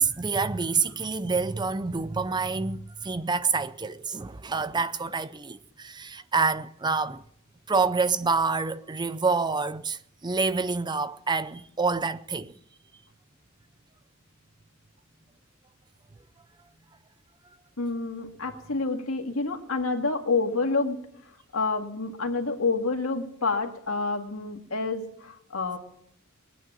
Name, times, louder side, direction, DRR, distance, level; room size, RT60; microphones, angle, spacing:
voice 1, 0.0-7.2 7.7-12.5, right 4 dB, 20° right, 0.5 m, -27 dB
voice 2, 17.8-21.0 21.5-25.8, left 3 dB, 85° left, 2.1 m, -28 dB
21.0 x 9.2 x 7.4 m
head